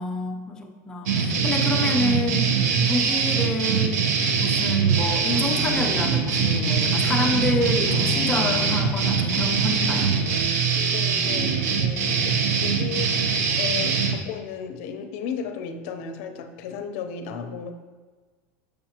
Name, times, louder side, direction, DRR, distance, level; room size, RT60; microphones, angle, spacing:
voice 1, 0.0-2.5 2.8-4.1 4.3-10.2, left 2 dB, 10° left, 1 dB, 0.5 m, -28 dB
sound 1, 1.1-14.2, right 5 dB, 85° right, 0.8 m, -23 dB
sound 2, 5.3-10.4, left 2 dB, 70° right, 1.3 m, -32 dB
voice 2, 10.7-12.4 12.6-13.2 13.6-17.7, left 7 dB, 55° left, 6 dB, 0.6 m, -34 dB
6.6 x 6.5 x 2.9 m, 1.4 s
supercardioid pair, 165°, 8 cm